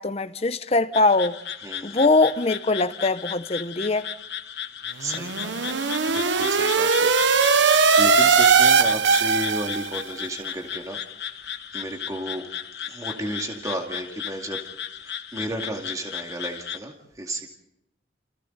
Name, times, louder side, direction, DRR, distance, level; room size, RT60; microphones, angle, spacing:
voice 1, 0.0-1.4 1.8-4.1, left 3 dB, 35° left, 0.8 m, -22 dB
sound 1, 0.9-16.8, left 9 dB, 65° left, 1.3 m, -35 dB
voice 2, 1.6-2.1 5.0-7.2 7.5-11.0 11.7-12.4 12.9-14.6 15.0-17.5, right 1 dB, 20° right, 2.3 m, -33 dB
sound 2, 5.0-10.0, right 5 dB, 90° right, 1.0 m, -19 dB
29.5 x 28.5 x 4.0 m
head